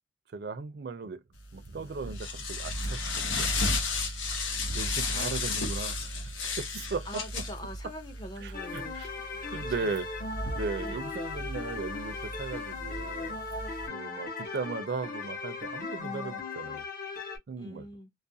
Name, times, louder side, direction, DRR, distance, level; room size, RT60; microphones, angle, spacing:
voice 1, 0.3-1.2 1.5-3.6 4.7-7.2 8.4-9.1 9.5-10.1 10.5-13.4 13.9-16.8 17.5-17.9, right 4 dB, 55° right, 0.4 m, -37 dB
sound 1, 1.5-13.9, left 2 dB, 85° left, 0.8 m, -34 dB
voice 2, 5.1-5.5 7.0-9.9 10.8-11.1 17.6-18.1, left 1 dB, 20° left, 0.5 m, -44 dB
sound 2, 8.5-17.4, left 4 dB, 50° left, 0.8 m, -38 dB
2.3 x 2.1 x 2.6 m
head